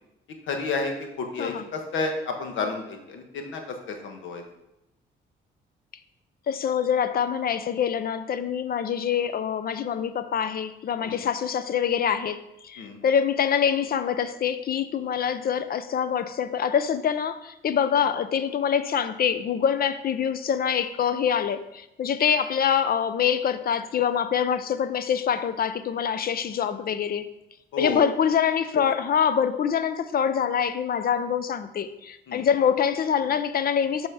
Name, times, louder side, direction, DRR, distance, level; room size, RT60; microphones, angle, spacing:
voice 1, 0.5-4.4 11.0-11.3 12.8-13.0 27.7-28.0 32.3-32.5, left 3 dB, 75° left, 1.3 m, -31 dB
voice 2, 6.5-27.3 27.8-34.1, left 8 dB, 50° left, 0.6 m, -25 dB
6.8 x 4.3 x 4.9 m
cardioid pair, 90°, 20 cm